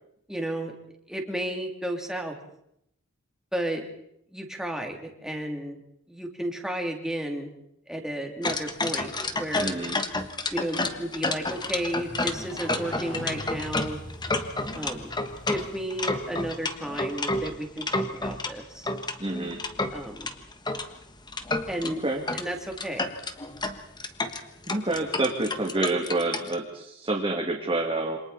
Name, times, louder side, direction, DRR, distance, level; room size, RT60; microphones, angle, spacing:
voice 1, 0.3-0.7 1.1-2.3 3.5-3.8 4.3-5.8 6.1-7.5 7.9-9.8 10.5-14.0 14.7-15.1 15.5-18.9 19.9-20.3 21.7-22.0 22.3-23.1, right 1 dB, 5° right, 2 dB, 2.9 m, -33 dB
sound 1, 8.4-18.5 18.9-20.9 21.3-21.9 22.3-22.5 22.7-26.6, left 2 dB, 20° left, 1.4 m, -30 dB
voice 2, 9.6-10.0 19.2-19.6 21.8-22.2 24.7-28.2, right 2 dB, 25° right, -1 dB, 2.4 m, -28 dB
Motorcycle, 11.1-17.0, left 1 dB, 35° left, 5.8 m, -42 dB
28.0 x 25.5 x 4.2 m, 0.76 s
head